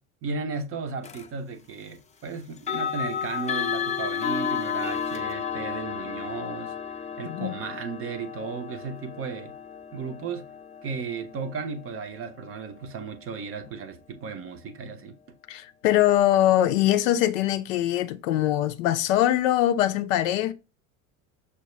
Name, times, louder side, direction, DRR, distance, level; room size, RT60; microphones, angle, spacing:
voice 1, 0.2-6.8 7.2-9.6 9.9-10.5 10.8-15.4, right 5 dB, 35° right, 0.6 m, -35 dB
sound 1, 1.0-1.3 2.6-13.4, left 7 dB, 15° left, 0.5 m, -33 dB
voice 2, 15.5-20.5, left 13 dB, 70° left, 0.5 m, -22 dB
6.1 x 2.2 x 2.9 m
hypercardioid pair, 70°, 42 cm